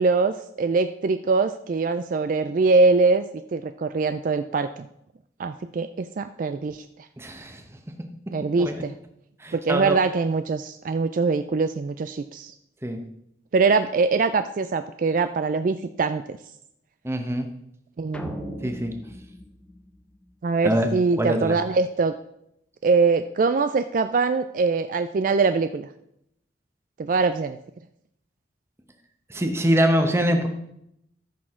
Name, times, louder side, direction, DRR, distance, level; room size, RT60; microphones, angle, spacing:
voice 1, 0.0-3.3 3.5-4.8 5.4-6.8 8.3-8.9 9.5-12.5 13.5-16.4 18.0-18.7 20.4-22.1 22.8-25.9 27.0-27.6, right 4 dB, 50° right, 10 dB, 0.3 m, -23 dB
voice 2, 7.2-7.6 8.6-8.8 9.4-10.0 12.8-13.0 17.0-17.5 18.6-18.9 20.6-20.9 21.2-21.6 29.3-30.5, equal, 15° right, 5 dB, 0.9 m, -23 dB
sound 1, 18.1-20.6, left 1 dB, 5° left, 0.5 m, -39 dB
14.0 x 6.2 x 3.7 m, 0.77 s
head